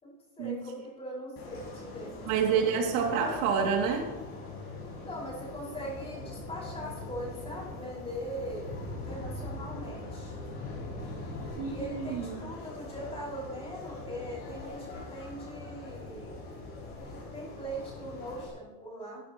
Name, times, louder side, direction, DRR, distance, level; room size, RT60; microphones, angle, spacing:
voice 1, 0.0-2.1 5.0-10.3 11.7-16.5 17.3-19.2, equal, 15° left, -5 dB, 5.3 m, -41 dB
sound 1, 1.4-18.5, left 2 dB, 30° left, 5.1 m, -42 dB
voice 2, 2.3-4.1 11.6-12.4, right 6 dB, 65° right, 1 dB, 2.7 m, -28 dB
19.0 x 13.0 x 3.1 m, 1.1 s
supercardioid pair, 155°, 44 cm